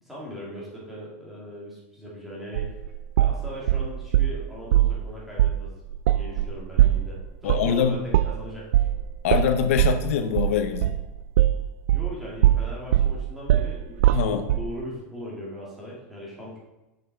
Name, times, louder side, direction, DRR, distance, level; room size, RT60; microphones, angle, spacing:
voice 1, 0.0-2.8 3.2-5.7 6.1-8.9 11.9-16.6, equal, 5° right, -6 dB, 1.9 m, -39 dB
sound 1, 2.5-4.4 4.7-5.0 5.4-5.6 5.9-12.1 12.4-14.7, right 13 dB, 85° right, 0.4 m, -21 dB
voice 2, 7.4-8.0 9.2-11.0 14.1-14.4, left 8 dB, 80° left, 8 dB, 0.7 m, -24 dB
6.7 x 5.8 x 4.4 m, 0.98 s
supercardioid pair, 175°, 7 cm